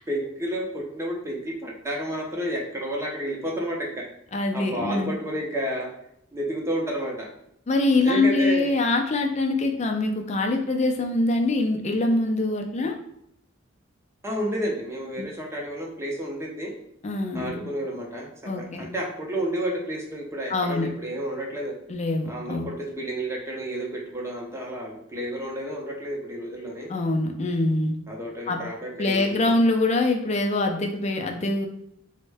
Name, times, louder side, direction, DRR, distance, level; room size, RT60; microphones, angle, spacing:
voice 1, 0.1-4.0 4.5-5.9 6.3-7.3 8.0-8.7 14.2-16.7 17.3-21.7 22.3-26.9 28.1-29.6, right 1 dB, 15° right, -1 dB, 0.6 m, -31 dB
voice 2, 4.3-5.1 7.7-13.0 17.0-17.6 18.5-18.9 20.5-20.9 21.9-22.7 26.9-27.9 28.5-28.6 29.0-31.7, left 2 dB, 35° left, 3 dB, 0.4 m, -24 dB
3.6 x 2.1 x 3.3 m, 0.75 s
head